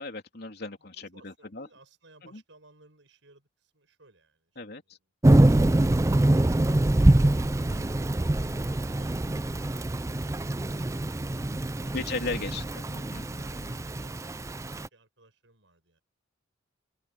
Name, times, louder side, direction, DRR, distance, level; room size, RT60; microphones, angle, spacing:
voice 1, 0.0-1.7 2.3-2.4 4.6-5.0 7.7-7.9 11.9-13.7, left 3 dB, 55° left, 3.3 m, -37 dB
voice 2, 0.8-7.8 13.3-14.4 14.8-16.0, right 2 dB, 70° right, 7.1 m, -60 dB
Thunder / Rain, 5.2-14.9, right 1 dB, 15° right, 0.4 m, -24 dB
head